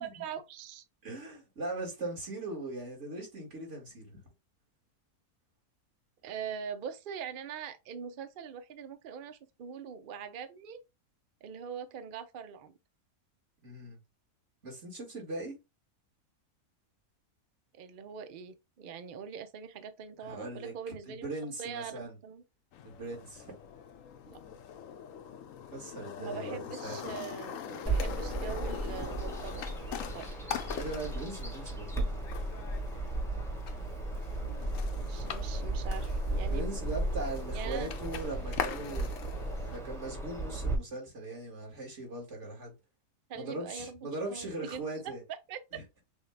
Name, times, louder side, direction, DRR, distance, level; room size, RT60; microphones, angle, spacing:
voice 1, 0.0-0.8 6.2-10.8 11.4-12.7 17.8-21.3 21.6-22.4 24.3-24.4 26.2-29.7 30.1-30.3 34.4-36.9 37.5-37.9 43.3-45.1 45.5-45.6, right 7 dB, 75° right, 0.4 m, -42 dB
voice 2, 1.0-4.2 13.6-14.0 14.6-15.6 20.2-20.7 21.1-22.2 22.8-23.5 25.7-27.2 30.7-32.2 36.5-39.1 39.7-42.7 43.3-45.2 45.7-45.8, right 2 dB, 50° right, 2.1 m, -40 dB
sound 1, 22.7-39.8, left 8 dB, 65° left, 0.9 m, -43 dB
Bird vocalization bird call bird song, 27.9-40.8, right 2 dB, ahead, 0.8 m, -35 dB
6.2 x 2.3 x 3.2 m
omnidirectional pair, 1.6 m